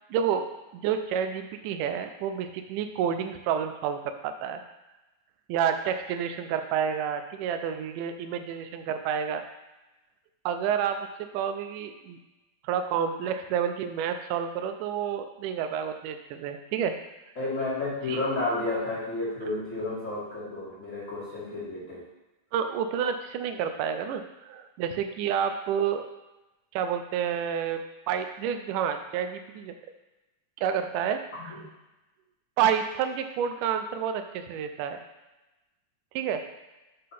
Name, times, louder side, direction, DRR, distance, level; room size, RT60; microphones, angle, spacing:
voice 1, 0.1-0.5 0.7-4.6 5.5-9.4 10.5-11.1 11.3-12.2 12.6-16.9 18.1-18.2 22.5-26.0 26.7-27.8 28.1-29.7 30.6-31.6 32.6-35.0 36.2-36.4, right 8 dB, 80° right, 7 dB, 2.0 m, -29 dB
voice 2, 17.3-22.0 31.5-31.6, left 2 dB, 30° left, -8 dB, 1.7 m, -31 dB
5.5 x 3.8 x 5.7 m, 1.0 s
omnidirectional pair, 3.9 m